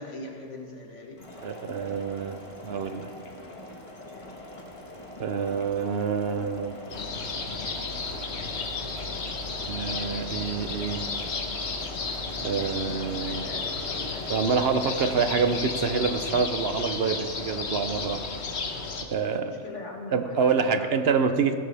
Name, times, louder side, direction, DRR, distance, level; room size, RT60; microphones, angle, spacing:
voice 1, 0.0-1.3 12.9-15.3 19.3-21.5, left 2 dB, 85° left, 0 dB, 2.1 m, -42 dB
sound 1, 1.2-16.4, left 1 dB, 30° left, 1.5 m, -43 dB
voice 2, 1.4-2.4 2.6-3.1 5.2-6.7 9.7-11.1 12.4-13.5 14.3-18.2 19.1-19.5 20.1-21.5, right 5 dB, 60° right, 8 dB, 1.0 m, -26 dB
sound 2, 6.9-19.0, left 4 dB, 70° left, 1.4 m, -33 dB
16.5 x 12.5 x 3.4 m, 2.2 s
omnidirectional pair, 1.2 m